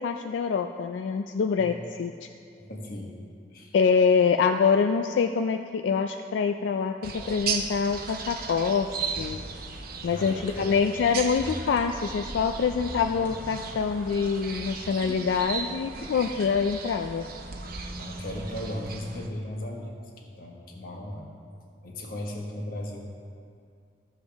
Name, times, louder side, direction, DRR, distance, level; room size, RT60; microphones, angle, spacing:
voice 1, 0.0-2.3 3.7-9.4 10.0-17.2, left 5 dB, 85° left, 6 dB, 0.3 m, -25 dB
voice 2, 2.6-3.1 3.5-3.7 10.0-10.7 18.0-19.9 20.2-21.3 21.8-23.0, left 1 dB, 55° left, 0 dB, 1.3 m, -36 dB
sound 1, 7.0-19.3, right 5 dB, 55° right, 0.8 m, -36 dB
sound 2, 9.1-9.6 11.0-12.0 12.9-13.6 14.5-15.4, equal, 15° left, 1.4 m, -43 dB
13.5 x 7.3 x 3.5 m, 2.3 s
head